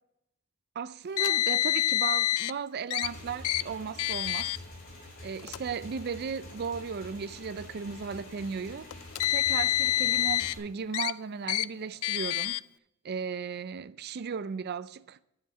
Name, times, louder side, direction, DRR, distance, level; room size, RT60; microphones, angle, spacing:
voice 1, 0.8-4.5 5.2-9.0 9.2-12.6 13.0-15.2, right 6 dB, 50° right, 0.4 m, -36 dB
Car, 1.2-2.5 2.9-3.1 3.4-3.6 4.0-4.6 5.4-5.6 6.5-6.6 8.9-10.5 10.9-11.1 11.5-11.7 12.0-12.6, left 13 dB, 80° left, 0.3 m, -27 dB
Motorcycle / Engine, 3.0-10.6, left 1 dB, 45° left, 3.0 m, -47 dB
10.0 x 7.7 x 5.5 m
head